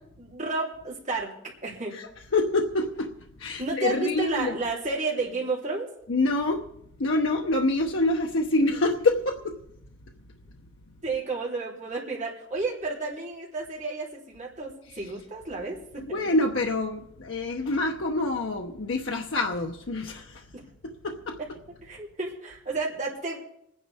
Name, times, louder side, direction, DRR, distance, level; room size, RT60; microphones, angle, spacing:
voice 1, 0.2-2.0 3.6-5.9 11.0-16.2 20.5-20.6 21.8-23.4, right 3 dB, 40° right, -4 dB, 3.5 m, -31 dB
voice 2, 2.3-3.1 3.4-4.5 6.1-6.7 7.0-9.6 16.0-20.4 20.8-21.4, left 2 dB, 85° left, 2 dB, 0.9 m, -26 dB
26.0 x 10.0 x 3.6 m, 0.77 s
head